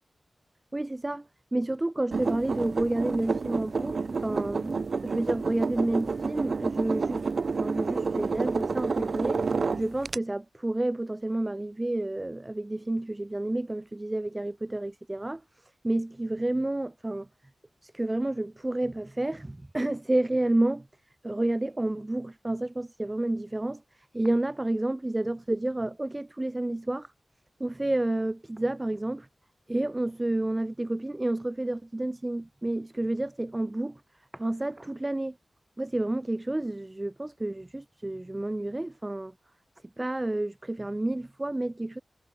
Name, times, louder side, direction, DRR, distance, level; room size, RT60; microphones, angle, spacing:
voice 1, 0.7-1.2 1.5-7.2 7.5-9.4 9.8-15.4 15.8-17.3 17.8-20.9 21.2-23.8 24.1-27.1 27.6-29.3 29.7-34.0 34.3-35.4 35.8-39.3 40.0-42.0, right 1 dB, 25° right, 2.4 m, -30 dB
sound 1, 2.1-10.2, right 4 dB, 70° right, 2.6 m, -29 dB
cardioid pair, 60°, 0 cm